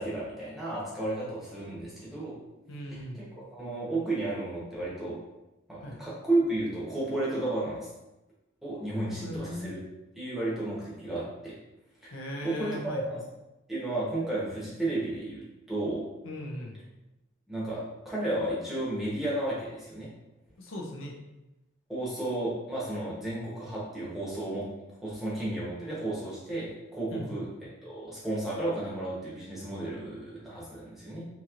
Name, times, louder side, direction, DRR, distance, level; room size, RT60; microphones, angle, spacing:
voice 1, 0.0-2.3 2.9-3.2 3.5-5.2 5.7-7.9 8.6-9.8 10.2-11.6 12.0-12.2 12.4-12.8 13.1-13.2 13.7-16.0 17.5-20.1 21.9-24.6 25.0-27.5 27.8-31.2, right 2 dB, ahead, -8 dB, 0.8 m, -33 dB
voice 2, 2.7-3.2 5.8-6.0 9.2-9.8 12.1-13.0 16.2-16.8 20.6-21.2 27.1-27.5, left 1 dB, 80° left, -1 dB, 0.5 m, -38 dB
2.9 x 2.8 x 2.4 m, 0.97 s
head